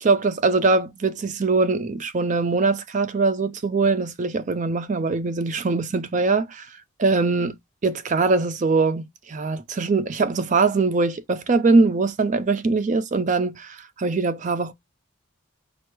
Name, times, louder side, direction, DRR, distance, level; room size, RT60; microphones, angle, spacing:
voice 1, 0.0-6.7 7.0-7.5 7.8-14.7, right 3 dB, 35° right, 0.4 m, -22 dB
4.5 x 2.0 x 4.5 m
head